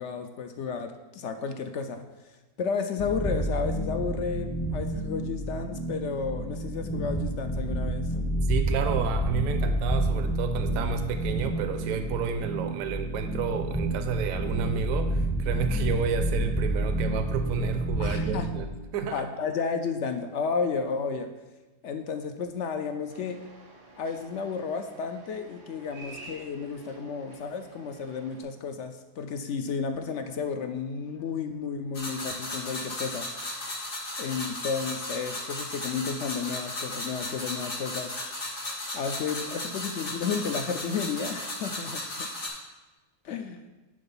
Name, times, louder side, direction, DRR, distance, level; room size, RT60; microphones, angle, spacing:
voice 1, 0.0-2.3 2.6-8.1 18.0-18.5 19.1-21.3 21.8-23.4 24.0-33.3 34.2-38.1 38.9-42.3 43.2-43.6, left 5 dB, 70° left, 7 dB, 0.7 m, -32 dB
sound 1, 3.0-18.7, right 1 dB, 15° left, 0.6 m, -29 dB
voice 2, 8.5-19.2, right 6 dB, 70° right, 8 dB, 1.0 m, -31 dB
sound 2, 23.1-28.4, right 2 dB, 90° right, 2.0 m, -49 dB
sound 3, 31.9-42.5, left 2 dB, 85° left, 2.9 m, -35 dB
10.0 x 3.9 x 5.5 m, 1.1 s
omnidirectional pair, 1.7 m